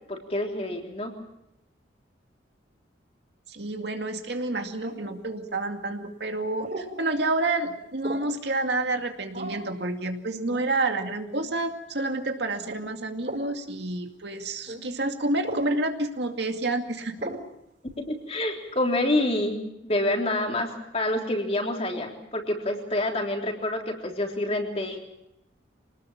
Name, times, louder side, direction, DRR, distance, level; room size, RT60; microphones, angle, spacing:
voice 1, 0.1-1.1 18.0-19.6 19.8-25.0, left 1 dB, 30° left, 2 dB, 3.6 m, -27 dB
voice 2, 3.5-17.2, right 2 dB, 65° right, 5 dB, 2.4 m, -29 dB
sound 1, 4.8-5.2 6.6-6.9 8.0-8.4 9.3-9.7 10.5-10.7 11.3-11.5 12.6-12.8 13.2-13.5 14.7-14.8 15.4-15.7 17.2-17.5, right 1 dB, 45° right, 6.7 m, -36 dB
26.5 x 19.5 x 7.3 m, 0.82 s
head